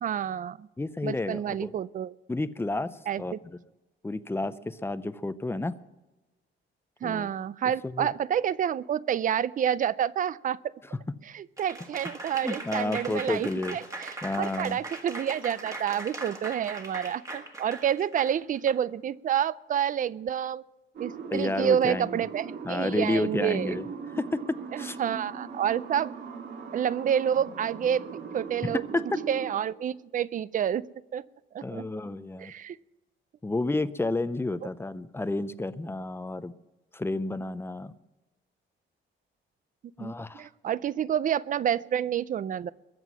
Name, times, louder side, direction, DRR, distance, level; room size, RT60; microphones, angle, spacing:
voice 1, 0.0-0.7 1.0-2.1 3.1-3.4 7.0-10.7 11.3-20.6 21.0-23.8 24.7-26.1 26.7-28.8 29.3-30.9 31.1-31.2 31.5-31.8 32.4-32.8 40.0-42.7, right 9 dB, 40° right, 19 dB, 0.4 m, -29 dB
voice 2, 0.8-1.7 2.3-3.6 4.0-5.7 7.0-7.3 7.8-8.1 12.4-13.8 14.2-14.8 21.3-22.2 22.6-23.8 24.1-24.4 24.8-25.0 28.6-29.1 31.6-32.5 33.4-36.5 36.9-37.9 40.0-40.5, left 2 dB, 10° left, 14 dB, 0.5 m, -31 dB
Applause / Crowd, 11.6-18.8, right 2 dB, 15° right, 1.6 m, -40 dB
sound 1, 20.9-29.5, right 5 dB, 55° right, 1.9 m, -40 dB
22.0 x 7.6 x 6.1 m, 1.1 s
wide cardioid pair, 160°, 21 cm